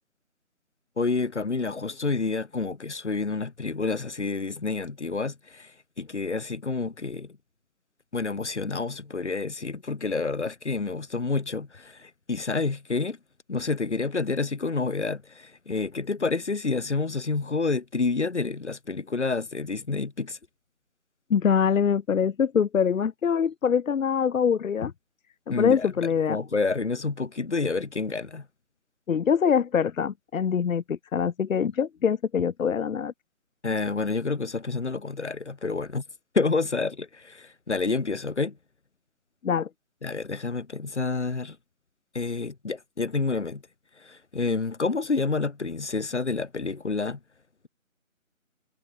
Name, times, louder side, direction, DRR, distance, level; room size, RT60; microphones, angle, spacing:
voice 1, 1.0-7.4 8.1-13.2 13.5-20.4 25.5-28.5 33.6-36.0 36.3-38.6 40.0-41.6 42.1-43.6 44.0-47.2, left 4 dB, 55° left, 2.4 m, -29 dB
voice 2, 21.3-24.9 25.5-26.4 29.1-33.1 39.4-39.7, left 7 dB, 70° left, 0.6 m, -24 dB
figure-of-eight pair, 170°, 41 cm